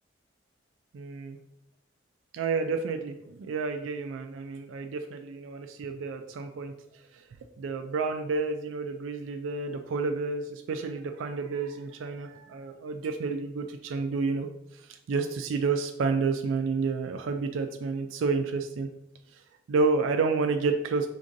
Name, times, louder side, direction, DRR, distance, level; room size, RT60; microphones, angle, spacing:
voice 1, 0.9-1.4 2.3-6.7 7.1-7.2 7.6-14.5 14.7-18.9 19.3-19.4 19.7-21.1, right 4 dB, 85° right, 5 dB, 0.3 m, -30 dB
5.1 x 3.6 x 2.6 m, 0.86 s
head